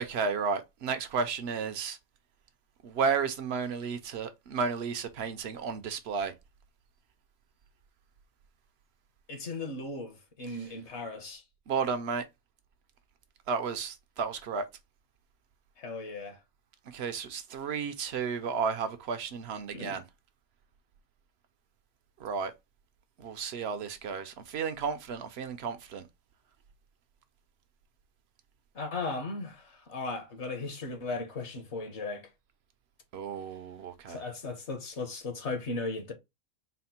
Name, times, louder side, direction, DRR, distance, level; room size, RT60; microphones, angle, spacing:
voice 1, 0.0-2.0 2.8-6.3 10.5-10.6 11.7-12.3 13.5-14.7 16.9-20.0 22.2-22.5 23.2-26.1 33.1-34.2, right 5 dB, 60° right, 0.8 m, -33 dB
voice 2, 9.3-11.4 15.8-16.4 19.7-20.0 28.7-32.3 34.1-36.1, left 3 dB, 55° left, 1.2 m, -37 dB
4.3 x 2.1 x 4.1 m
omnidirectional pair, 1.4 m